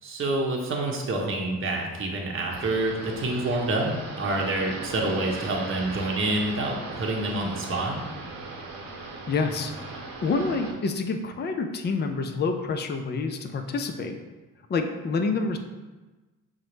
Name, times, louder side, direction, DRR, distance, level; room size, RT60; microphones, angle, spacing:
voice 1, 0.0-8.1, right 2 dB, 30° right, 0 dB, 0.8 m, -27 dB
sound 1, 2.5-10.7, right 3 dB, 60° right, 0.9 m, -38 dB
voice 2, 9.3-9.7 10.1-14.2 14.7-15.6, left 4 dB, 25° left, 5 dB, 0.5 m, -27 dB
5.6 x 2.1 x 3.1 m, 1.2 s
hypercardioid pair, 45°, 40 cm